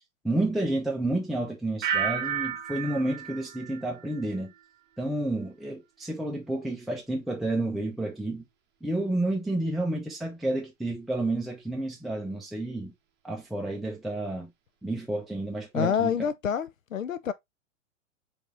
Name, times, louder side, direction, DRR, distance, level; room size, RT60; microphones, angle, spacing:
voice 1, 0.2-4.5 5.0-8.5 8.8-12.9 13.2-14.5 14.8-16.2, right 2 dB, ahead, 0.8 m, -30 dB
sound 1, 1.8-4.7 5.0-5.5, right 8 dB, 25° right, 1.1 m, -33 dB
voice 2, 15.7-17.3, left 7 dB, 90° left, 0.6 m, -27 dB
4.9 x 3.6 x 2.7 m
figure-of-eight pair, 105°, 38 cm